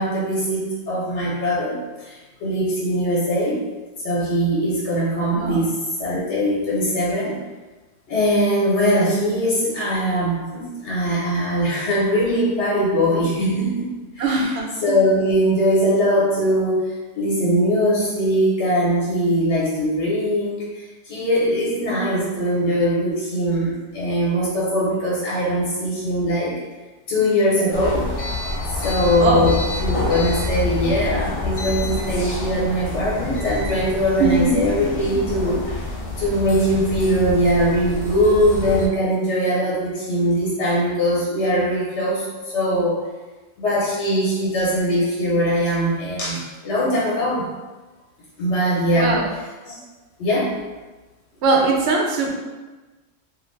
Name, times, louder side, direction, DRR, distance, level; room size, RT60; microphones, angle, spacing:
voice 1, 0.0-3.6 4.0-7.4 8.1-13.9 14.1-14.5 14.8-26.5 27.1-28.1 28.7-35.6 36.2-43.0 43.6-47.5 48.4-49.2 49.6-49.8 50.2-50.5, equal, 85° left, -6 dB, 1.1 m, -21 dB
voice 2, 5.3-5.7 14.2-14.7 29.2-29.5 34.2-34.6 49.0-49.3 51.4-52.4, right 3 dB, 70° right, 0 dB, 0.8 m, -20 dB
sound 1, 27.7-38.9, left 3 dB, 45° left, 0.5 m, -27 dB
2.5 x 2.5 x 3.1 m, 1.2 s
omnidirectional pair, 1.2 m